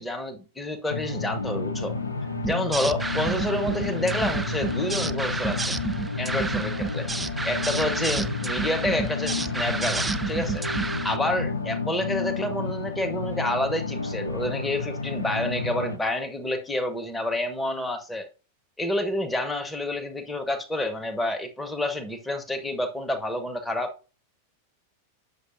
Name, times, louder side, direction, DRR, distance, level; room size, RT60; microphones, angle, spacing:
voice 1, 0.0-1.9 2.4-5.7 6.2-10.6 11.0-18.3 18.8-23.9, left 1 dB, 5° left, 1.1 m, -29 dB
sound 1, 0.9-16.0, left 3 dB, 80° left, 1.0 m, -31 dB
sound 2, 2.4-11.2, right 3 dB, 10° right, 0.3 m, -30 dB
8.3 x 6.6 x 2.6 m
figure-of-eight pair, 90°, 0 cm